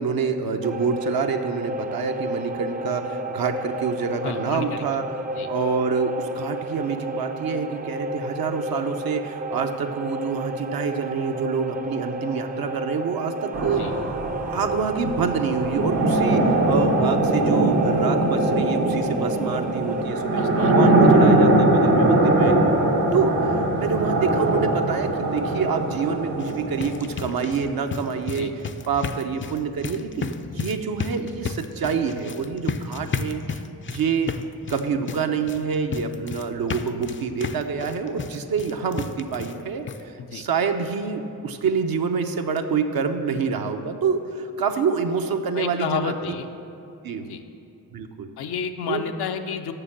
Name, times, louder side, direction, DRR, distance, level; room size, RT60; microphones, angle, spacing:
voice 1, 0.0-5.1 5.5-14.0 14.5-22.6 23.1-28.5 28.9-34.3 34.7-46.1 47.0-47.3 47.9-48.3 48.9-49.0, right 5 dB, 65° right, 5 dB, 0.8 m, -27 dB
sound 1, 0.6-20.0, right 1 dB, 25° right, 0.5 m, -32 dB
voice 2, 4.2-4.8 5.4-5.5 13.8-13.9 20.3-20.7 21.0-21.1 28.3-28.5 40.2-40.4 45.5-46.5 47.2-47.4 48.4-49.7, left 7 dB, 75° left, 6 dB, 0.7 m, -31 dB
sound 2, 13.5-27.4, right 2 dB, 80° right, 1.5 m, -21 dB
sound 3, 26.3-39.6 39.9-40.0 40.4-40.5 40.9-41.0, left 5 dB, 30° left, 0.5 m, -33 dB
6.8 x 6.4 x 7.4 m, 2.7 s
supercardioid pair, 50°, 39 cm